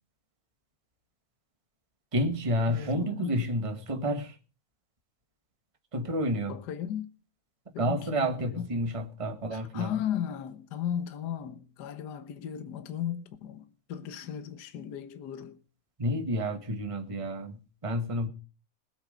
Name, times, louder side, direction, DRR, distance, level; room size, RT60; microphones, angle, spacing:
voice 1, 2.1-4.4 5.9-6.5 7.8-9.9 16.0-18.3, equal, 20° right, 0.9 m, -30 dB
voice 2, 2.7-3.4 6.5-7.1 7.7-8.7 9.5-15.6, left 9 dB, 55° left, 1.2 m, -36 dB
20.0 x 8.1 x 5.1 m
omnidirectional pair, 3.4 m